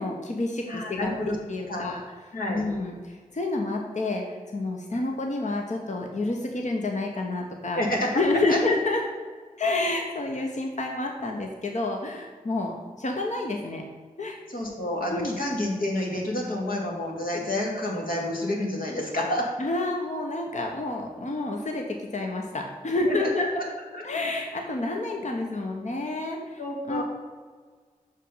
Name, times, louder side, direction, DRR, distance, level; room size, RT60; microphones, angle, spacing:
voice 1, 0.0-2.0 2.5-7.8 8.1-9.0 9.6-13.8 14.2-14.4 15.1-15.4 19.6-23.5 24.0-26.6 26.9-27.0, left 2 dB, 50° left, 2 dB, 1.1 m, -29 dB
voice 2, 0.7-1.4 1.7-1.9 2.3-2.6 7.7-8.1 8.5-8.6 14.5-19.5 23.1-23.6 23.9-24.0 26.6-27.0, left 1 dB, 70° left, -2 dB, 2.2 m, -29 dB
6.2 x 5.5 x 5.6 m, 1.5 s
cardioid pair, 40°, 15 cm